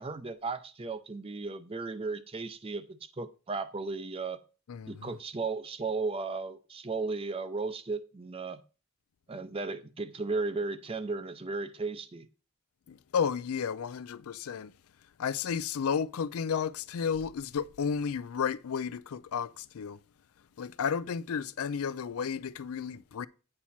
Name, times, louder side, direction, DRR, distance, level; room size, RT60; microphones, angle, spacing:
voice 1, 0.0-4.4 4.9-8.6 9.3-12.3, right 3 dB, 25° right, 0.5 m, -35 dB
voice 2, 4.7-5.2 12.9-14.7 15.2-20.0 20.6-23.3, left 6 dB, 75° left, 0.4 m, -32 dB
8.8 x 5.9 x 4.2 m
head